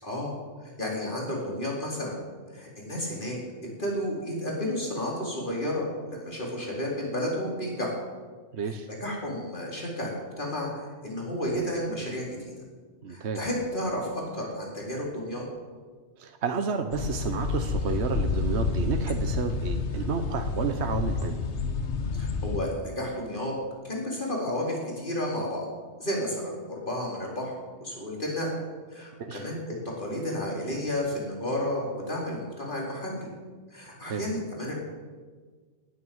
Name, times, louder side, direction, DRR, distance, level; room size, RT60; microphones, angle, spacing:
voice 1, 0.0-0.3 0.6-2.2 2.5-3.4 3.8-7.9 9.0-12.5 13.1-15.4 22.1-23.5 23.8-25.6 26.0-27.5 27.8-28.5 28.9-33.3 33.7-34.7, left 1 dB, 45° left, -3 dB, 4.6 m, -32 dB
voice 2, 8.5-8.9 13.0-13.4 16.2-21.4 29.3-29.4 34.1-34.2, right 5 dB, 70° right, 6 dB, 1.2 m, -31 dB
sound 1, 16.9-22.6, left 4 dB, 75° left, 1.5 m, -29 dB
19.0 x 9.1 x 8.0 m, 1.5 s
omnidirectional pair, 1.2 m